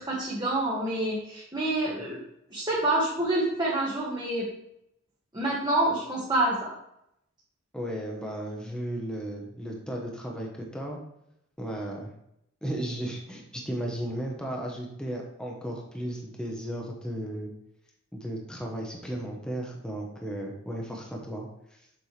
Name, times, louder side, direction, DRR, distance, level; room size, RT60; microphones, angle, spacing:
voice 1, 0.0-2.2 2.5-4.5 5.3-6.7, right 1 dB, 20° right, -5 dB, 1.2 m, -27 dB
voice 2, 7.7-11.0 11.6-12.1 12.6-17.5 18.1-21.8, right 1 dB, 5° left, -1 dB, 0.9 m, -35 dB
7.0 x 5.4 x 3.3 m, 0.78 s
head